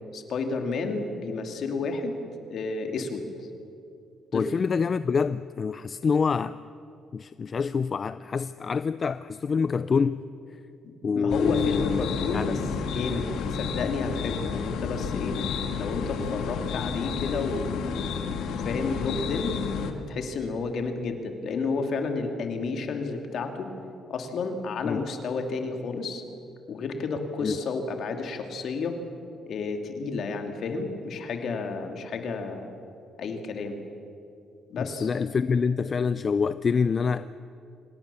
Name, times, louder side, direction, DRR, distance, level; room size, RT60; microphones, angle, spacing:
voice 1, 0.1-2.2 2.5-3.3 4.3-4.5 10.8-12.6 12.9-15.4 15.8-19.6 19.9-23.7 24.1-26.2 26.7-29.0 29.4-32.7 33.2-33.8 34.7-35.1, left 4 dB, 65° left, 2.7 m, -31 dB
voice 2, 4.3-6.6 7.1-10.2 11.0-12.0 12.3-12.6 24.8-25.0 27.4-27.5 34.8-37.4, left 5 dB, 40° left, 0.5 m, -26 dB
sound 1, 11.3-19.9, left 6 dB, 85° left, 1.8 m, -31 dB
25.5 x 18.5 x 7.1 m
cardioid pair, 90°, 0 cm